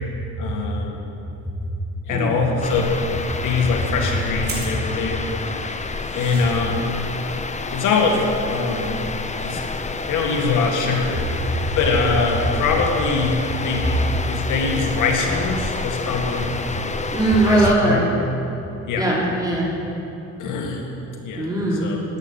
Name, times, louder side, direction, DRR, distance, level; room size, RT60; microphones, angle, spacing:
voice 1, 0.4-1.0 2.1-2.9 3.4-5.2 6.1-6.9 7.7-9.0 9.4-9.6 10.1-11.2 11.8-14.0 14.3-17.0 17.4-18.1 18.9-19.1 20.4-20.9 21.2-21.5 21.8-22.0, left 4 dB, 80° left, 1 dB, 2.1 m, -23 dB
sound 1, 2.6-17.8, left 3 dB, 25° left, 0.8 m, -29 dB
sound 2, 4.4-10.2, right 2 dB, 35° right, 3.9 m, -40 dB
voice 2, 17.1-18.1 19.0-19.7 21.4-22.0, right 1 dB, 10° right, -5 dB, 3.4 m, -20 dB
13.0 x 7.0 x 9.9 m, 2.9 s
cardioid pair, 90°, 30 cm